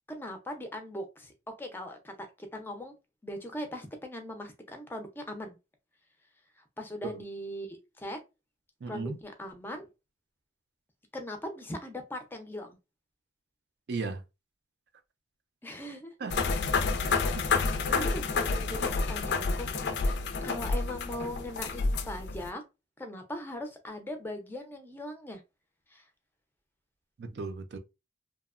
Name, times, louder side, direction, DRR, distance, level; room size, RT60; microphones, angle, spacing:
voice 1, 0.1-2.9 3.2-5.6 6.6-8.2 8.9-9.9 11.1-12.8 15.6-16.1 17.3-20.2 20.4-22.6 23.0-25.4 25.9-26.1, left 1 dB, 10° left, 0.4 m, -40 dB
voice 2, 8.8-9.2 13.9-14.2 16.2-16.4 17.0-17.5 17.9-18.1 27.2-27.8, right 4 dB, 65° right, 0.4 m, -36 dB
sound 1, 16.3-22.5, left 4 dB, 70° left, 0.4 m, -29 dB
2.8 x 2.1 x 2.3 m
head